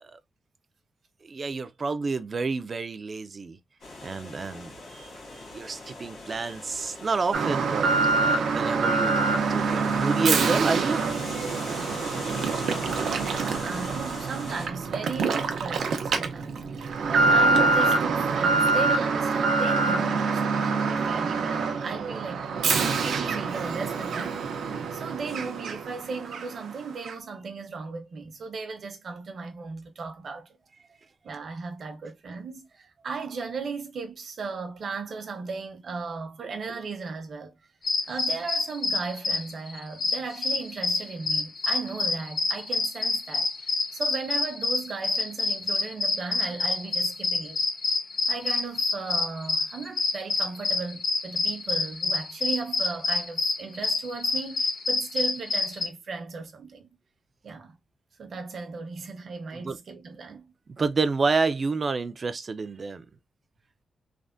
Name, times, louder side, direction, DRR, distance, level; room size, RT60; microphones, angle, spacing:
voice 1, 1.2-3.6 4.0-7.9 8.2-11.0 59.5-59.8 60.7-63.1, right 4 dB, 35° right, 0.3 m, -29 dB
sound 1, 3.8-14.7, left 2 dB, 70° left, 1.5 m, -41 dB
Alarm, 7.3-26.0 26.3-26.4 27.0-27.1, right 4 dB, 85° right, 0.6 m, -25 dB
voice 2, 12.8-30.5 31.2-37.5 38.1-43.5 43.9-47.6 48.3-56.9 57.4-57.8 58.2-60.5, right 4 dB, 50° right, 0.7 m, -36 dB
sound 2, 37.8-55.9, left 3 dB, 40° left, 0.5 m, -27 dB
3.3 x 2.1 x 2.5 m
wide cardioid pair, 170°, 0 cm